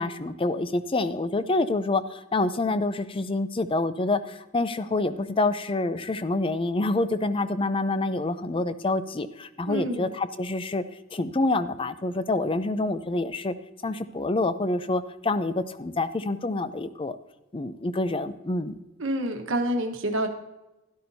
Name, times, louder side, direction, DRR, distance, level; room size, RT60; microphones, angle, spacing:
voice 1, 0.0-10.8 11.1-13.5 13.8-17.2 17.5-18.7, left 2 dB, 25° left, 13 dB, 0.5 m, -27 dB
voice 2, 9.7-10.1 19.0-20.3, right 1 dB, 65° right, 4 dB, 1.3 m, -27 dB
12.0 x 12.0 x 2.7 m, 1.0 s
head